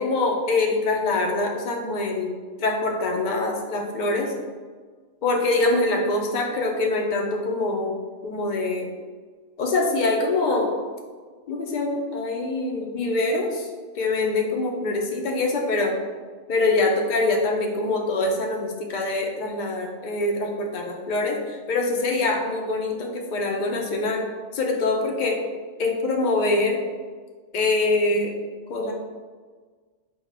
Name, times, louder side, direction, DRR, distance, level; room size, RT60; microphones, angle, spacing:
voice 1, 0.0-2.3 2.6-4.3 5.2-7.9 8.2-8.9 9.6-10.7 11.5-13.7 13.9-16.0 16.5-24.3 24.5-25.4 25.8-26.8 27.5-28.4 28.7-28.9, left 2 dB, 60° left, 1 dB, 0.5 m, -24 dB
3.5 x 2.3 x 3.2 m, 1.5 s
omnidirectional pair, 1.3 m